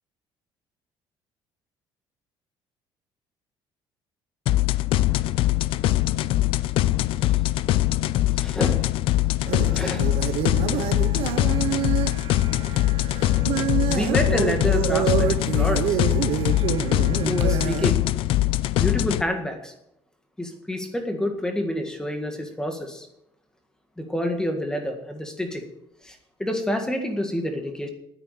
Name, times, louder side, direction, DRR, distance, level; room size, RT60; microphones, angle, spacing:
sound 1, 4.5-19.2, left 15 dB, 65° left, 0.4 m, -22 dB
voice 1, 8.3-8.9 9.7-10.2 13.9-16.0 17.3-18.0 18.7-19.7 20.4-23.1 24.0-25.6 26.0-27.9, left 1 dB, 5° left, 5 dB, 1.8 m, -28 dB
sound 2, 9.4-17.9, right 12 dB, 75° right, 0.9 m, -28 dB
9.8 x 8.2 x 9.1 m, 0.82 s
cardioid pair, 150°, 10 cm